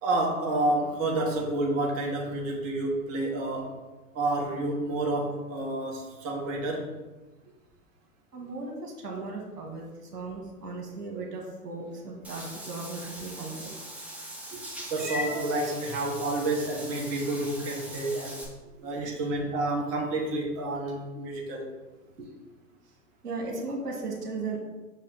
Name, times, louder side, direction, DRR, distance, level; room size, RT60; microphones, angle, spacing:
voice 1, 0.0-3.7 4.1-6.9 14.9-18.4 18.8-21.7, right 2 dB, 30° right, -1 dB, 1.2 m, -29 dB
voice 2, 8.3-13.9 14.5-14.6 18.8-19.2 22.2-22.3 23.2-24.6, right 3 dB, 75° right, -1 dB, 1.7 m, -37 dB
Meow / Water / Bathtub (filling or washing), 12.2-18.4, equal, 5° right, 0.8 m, -40 dB
6.0 x 4.2 x 4.0 m, 1.1 s
figure-of-eight pair, 110°, 47 cm